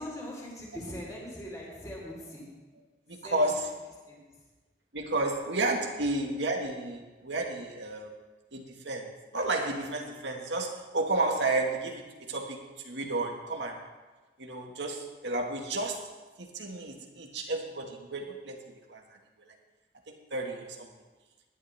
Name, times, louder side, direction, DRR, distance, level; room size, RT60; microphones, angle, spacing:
voice 1, 0.0-2.5 3.1-3.5 4.0-4.4, equal, 20° left, -4 dB, 4.1 m, -41 dB
voice 2, 3.1-3.6 4.9-8.1 8.5-12.6 12.8-13.8 14.4-18.6 18.9-19.0 19.5-19.6 20.1-20.9, right 2 dB, 90° right, 2 dB, 2.0 m, -32 dB
19.0 x 11.5 x 3.6 m, 1.2 s
head